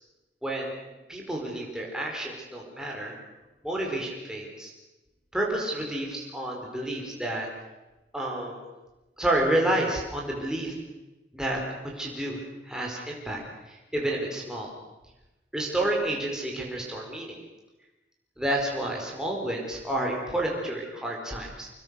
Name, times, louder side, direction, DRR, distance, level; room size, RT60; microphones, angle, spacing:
voice 1, 1.1-3.2 3.6-4.7 5.3-7.5 8.1-8.6 9.2-10.7 11.3-11.6 11.9-12.4 12.6-13.4 13.7-14.7 15.5-17.4 18.4-21.7, right 1 dB, 5° right, -2 dB, 4.8 m, -30 dB
26.0 x 20.5 x 6.6 m, 1.0 s
head